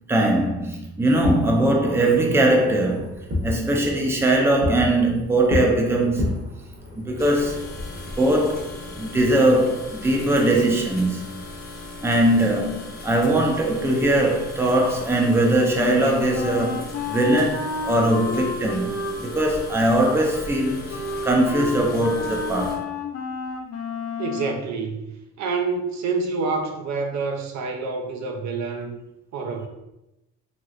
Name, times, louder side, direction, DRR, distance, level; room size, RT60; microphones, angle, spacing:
voice 1, 0.1-3.1 3.4-6.4 7.0-7.6 8.2-11.4 12.0-22.9, right 1 dB, 10° right, 0.5 m, -21 dB
Fireworks, 1.1-10.3, left 2 dB, 50° right, 1.0 m, -32 dB
sound 1, 7.2-22.7, left 2 dB, 30° left, 0.9 m, -38 dB
Wind instrument woodwind instrument, 15.7-24.6, left 4 dB, 60° left, 0.6 m, -31 dB
voice 2, 24.2-25.1 25.4-29.0 29.3-29.7, right 4 dB, 65° right, 0.5 m, -27 dB
2.9 x 2.9 x 2.4 m
cardioid pair, 90°, 30 cm